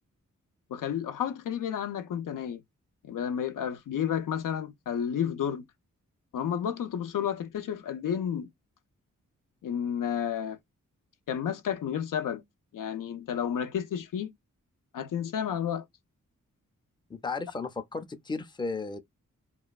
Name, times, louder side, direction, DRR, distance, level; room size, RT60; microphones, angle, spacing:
voice 1, 0.7-2.6 3.0-5.6 6.3-8.5 9.6-10.6 11.3-12.4 12.7-14.3 14.9-15.8, left 8 dB, 80° left, 0.5 m, -31 dB
voice 2, 17.1-19.0, left 4 dB, 15° left, 0.5 m, -34 dB
3.0 x 2.2 x 2.3 m
cardioid pair, 60°, 32 cm